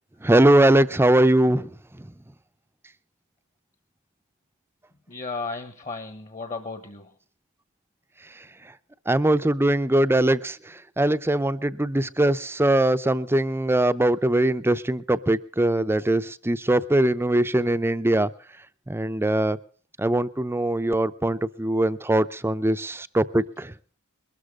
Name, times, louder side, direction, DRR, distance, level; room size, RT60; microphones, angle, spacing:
voice 1, 0.2-2.1 9.1-18.3 18.9-19.6 20.0-23.7, right 1 dB, 10° right, 13 dB, 0.6 m, -21 dB
voice 2, 5.1-7.1, left 3 dB, 35° left, 9 dB, 1.2 m, -34 dB
22.0 x 13.0 x 3.7 m, 0.42 s
head